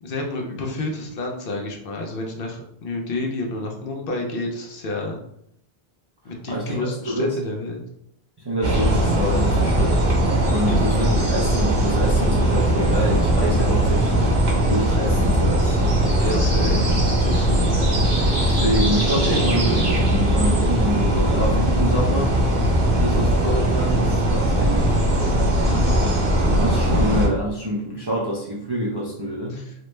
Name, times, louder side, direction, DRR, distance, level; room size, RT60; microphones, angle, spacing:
voice 1, 0.0-5.2 6.2-7.8 10.6-10.8 16.2-17.7 25.6-26.0 29.5-29.7, left 2 dB, 65° left, 1 dB, 0.7 m, -30 dB
voice 2, 6.5-7.4 8.4-10.0 10.5-15.9 18.4-22.4 22.9-25.0 26.0-26.1 26.4-29.6, equal, 45° right, -5 dB, 0.3 m, -26 dB
sound 1, 8.6-27.3, right 1 dB, 60° right, 1.0 m, -19 dB
3.0 x 2.0 x 3.1 m, 0.73 s
omnidirectional pair, 1.1 m